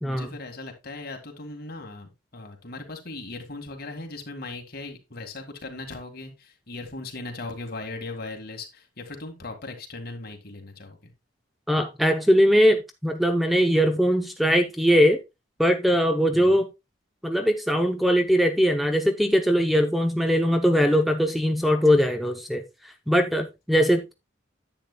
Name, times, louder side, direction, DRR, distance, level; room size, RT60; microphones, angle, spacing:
voice 1, 0.0-11.1 16.3-16.7, left 2 dB, 55° left, 1.9 m, -38 dB
voice 2, 11.7-15.2 15.6-16.7 17.2-22.6 23.1-24.1, equal, ahead, 0.7 m, -21 dB
10.0 x 8.1 x 2.2 m
head